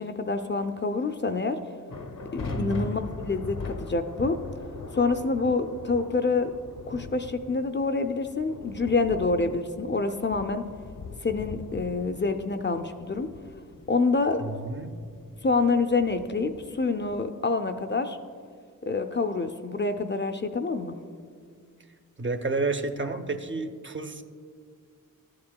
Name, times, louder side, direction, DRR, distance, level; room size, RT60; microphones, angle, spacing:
voice 1, 0.0-1.6 2.3-4.4 4.9-6.5 6.9-10.6 11.2-13.3 13.9-14.4 15.4-18.2 18.9-21.0, left 3 dB, 35° left, 7 dB, 0.4 m, -27 dB
sound 1, 1.9-17.2, left 3 dB, 75° left, 0.8 m, -41 dB
voice 2, 2.5-3.0 14.4-15.0 22.2-24.2, right 3 dB, 35° right, 7 dB, 0.5 m, -30 dB
13.5 x 8.5 x 2.2 m, 2.1 s
wide cardioid pair, 75°, 34 cm